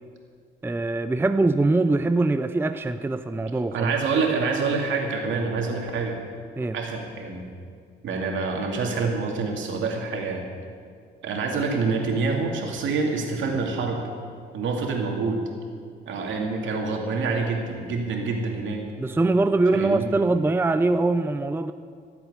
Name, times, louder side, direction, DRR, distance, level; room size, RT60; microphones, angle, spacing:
voice 1, 0.6-3.9 6.6-6.8 19.0-21.7, right 2 dB, 10° right, 11 dB, 0.5 m, -23 dB
voice 2, 3.7-6.2 6.7-7.5 8.0-10.4 11.2-14.0 14.5-15.4 16.1-18.9 19.7-20.0, right 4 dB, 70° right, 1 dB, 2.6 m, -26 dB
15.0 x 8.2 x 8.6 m, 2.2 s
cardioid pair, 90°, 20 cm